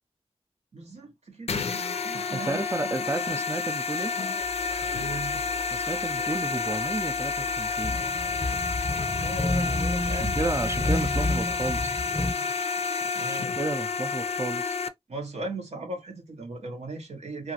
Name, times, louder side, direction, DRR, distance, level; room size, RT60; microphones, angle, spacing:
voice 1, 0.7-3.0 4.9-5.4 9.1-10.9 11.5-11.6 12.8-13.6 15.1-17.5, right 2 dB, 90° right, 0.9 m, -38 dB
sound 1, 1.5-14.9, left 5 dB, 70° left, 0.4 m, -30 dB
sound 2, 1.5-12.3, right 2 dB, 55° right, 1.0 m, -50 dB
voice 2, 2.3-4.1 5.7-8.0 10.1-12.0 13.3-14.8, right 2 dB, 25° right, 0.4 m, -32 dB
sound 3, 4.4-6.4 6.7-12.3, left 2 dB, 5° left, 0.8 m, -31 dB
2.9 x 2.5 x 2.7 m
cardioid pair, 40°, 11 cm